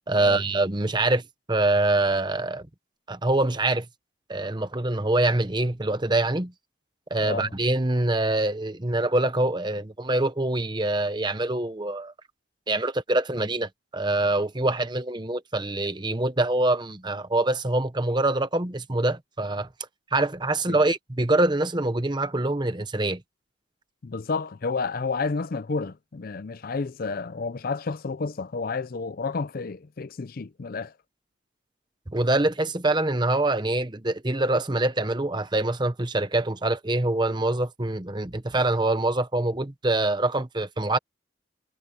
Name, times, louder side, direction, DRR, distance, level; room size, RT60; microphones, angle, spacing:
voice 1, 0.1-1.2 1.5-2.7 3.1-3.9 4.3-6.5 7.1-12.1 12.7-19.7 20.1-23.2 32.1-41.0, right 2 dB, 20° right, 1.0 m, -25 dB
voice 2, 7.2-7.5 20.7-20.8 24.0-30.9, left 4 dB, 45° left, 0.5 m, -30 dB
head